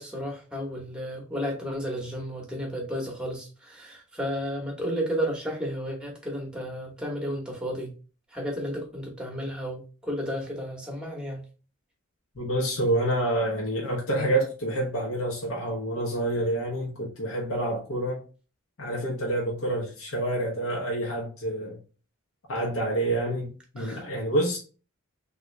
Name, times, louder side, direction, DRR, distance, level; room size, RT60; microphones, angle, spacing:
voice 1, 0.0-7.9 8.3-11.4 23.8-24.0, equal, 5° right, 0.9 m, -32 dB
voice 2, 12.4-18.2 18.8-21.8 22.5-24.6, right 1 dB, 70° left, 0.8 m, -28 dB
3.6 x 2.4 x 3.0 m
head